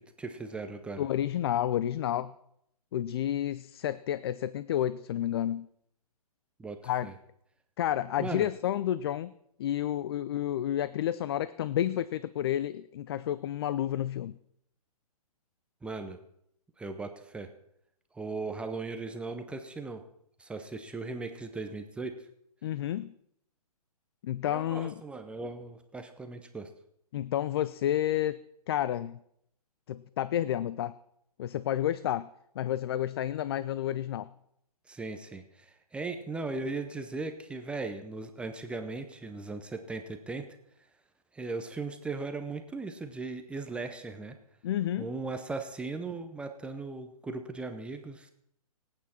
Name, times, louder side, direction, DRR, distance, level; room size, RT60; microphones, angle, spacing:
voice 1, 0.2-1.1 6.6-7.1 8.2-8.5 15.8-16.2 16.8-17.5 18.1-20.0 20.4-22.2 24.4-26.7 34.9-40.5 41.3-44.4 45.0-48.3, right 3 dB, 5° right, 6 dB, 0.6 m, -38 dB
voice 2, 1.0-2.3 2.9-5.7 6.8-7.1 7.8-9.3 9.6-14.4 22.6-23.1 24.2-24.9 27.1-28.4 28.7-29.2 29.9-30.9 31.4-32.3 32.6-34.3 44.6-45.1, left 11 dB, 40° left, 17 dB, 0.4 m, -30 dB
24.5 x 8.8 x 4.3 m, 0.74 s
hypercardioid pair, 140°, 20 cm